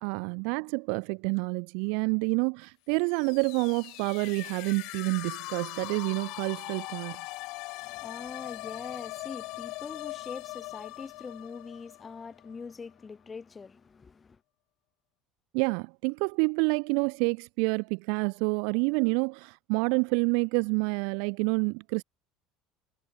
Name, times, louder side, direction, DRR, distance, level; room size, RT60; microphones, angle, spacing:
voice 1, 0.0-7.2 15.5-22.0, right 40 dB or more, 70° right, 0.7 m, -28 dB
sound 1, 3.0-12.7, left 23 dB, 60° left, 2.0 m, -41 dB
voice 2, 7.8-14.4, left 5 dB, 15° left, 0.7 m, -43 dB
cardioid pair, 160°, 0 cm